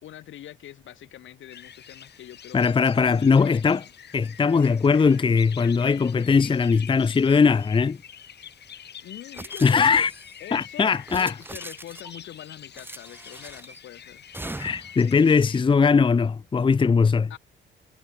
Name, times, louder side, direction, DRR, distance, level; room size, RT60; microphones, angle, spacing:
voice 1, 0.0-3.9 8.7-10.1 10.4-14.3 17.3-17.4, left 12 dB, 75° left, 2.5 m, -44 dB
sound 1, 1.5-15.6, left 9 dB, 60° left, 3.8 m, -45 dB
voice 2, 2.5-3.8 4.1-8.0 9.6-10.1 10.5-11.3 14.6-17.3, left 5 dB, 25° left, 0.7 m, -20 dB
sound 2, 9.3-10.4 11.0-12.2 12.7-13.8 14.3-15.0, right 2 dB, 10° right, 1.5 m, -40 dB
cardioid pair, 90°, 20 cm